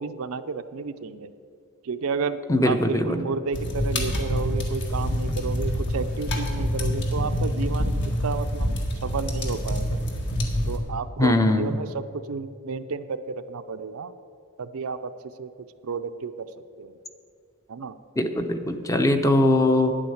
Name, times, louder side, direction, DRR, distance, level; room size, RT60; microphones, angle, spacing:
voice 1, 0.0-1.3 1.8-2.4 2.7-10.0 10.7-14.1 14.6-15.5 15.8-16.5 16.8-17.0 17.7-18.0, right 4 dB, 70° right, 10 dB, 0.5 m, -32 dB
voice 2, 2.5-3.2 11.2-11.8 18.2-19.9, left 1 dB, 15° left, 7 dB, 0.7 m, -21 dB
sound 1, 3.5-10.8, equal, 55° left, 1.7 m, -26 dB
9.8 x 8.7 x 7.8 m, 2.4 s
head